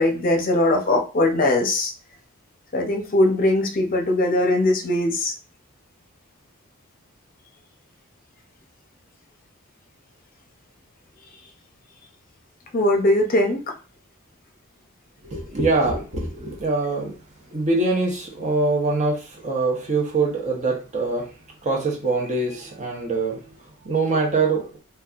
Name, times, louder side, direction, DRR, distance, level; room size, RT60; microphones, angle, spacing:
voice 1, 0.0-1.9 2.7-5.3 12.7-13.6, left 1 dB, 40° left, 2 dB, 0.7 m, -20 dB
voice 2, 15.2-17.1 17.5-21.3 21.6-23.4 23.8-24.7, right 3 dB, 35° right, -1 dB, 1.0 m, -23 dB
4.1 x 2.2 x 2.4 m, 0.34 s
head